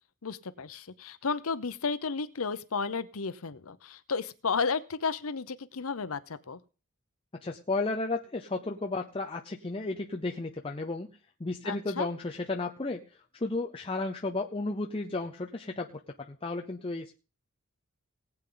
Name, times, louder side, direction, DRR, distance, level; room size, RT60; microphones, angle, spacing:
voice 1, 0.2-6.6 11.6-12.1, left 5 dB, 85° left, 13 dB, 0.8 m, -33 dB
voice 2, 7.4-11.1 11.4-13.0 13.4-16.0 16.3-17.1, left 2 dB, 25° left, 2 dB, 0.6 m, -33 dB
18.5 x 8.4 x 3.9 m, 0.34 s
head